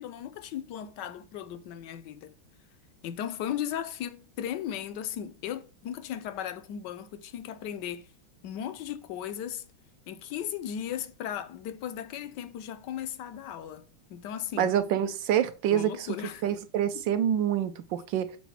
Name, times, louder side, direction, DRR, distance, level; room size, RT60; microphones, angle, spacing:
voice 1, 0.0-2.3 3.0-8.1 8.4-9.7 10.1-14.7 15.7-16.4 16.9-17.0, left 10 dB, 70° left, 1.2 m, -36 dB
voice 2, 14.6-16.1 16.4-18.3, right 10 dB, 75° right, 1.3 m, -26 dB
6.2 x 3.9 x 5.8 m
omnidirectional pair, 2.2 m